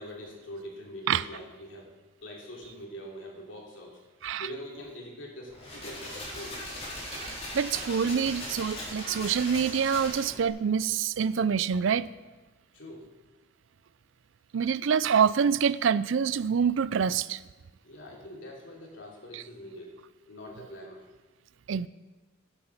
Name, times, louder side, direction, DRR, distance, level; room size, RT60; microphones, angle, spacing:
voice 1, 0.0-1.9 2.2-4.0 4.4-6.6 12.7-13.1 17.8-21.0, equal, 65° left, -2 dB, 3.1 m, -44 dB
sound 1, 5.5-10.5, left 1 dB, 30° left, 3.9 m, -39 dB
voice 2, 7.1-12.1 14.5-17.4 19.3-19.4 21.7-21.9, right 7 dB, 70° right, 18 dB, 0.4 m, -26 dB
11.0 x 9.9 x 5.9 m, 1.2 s
head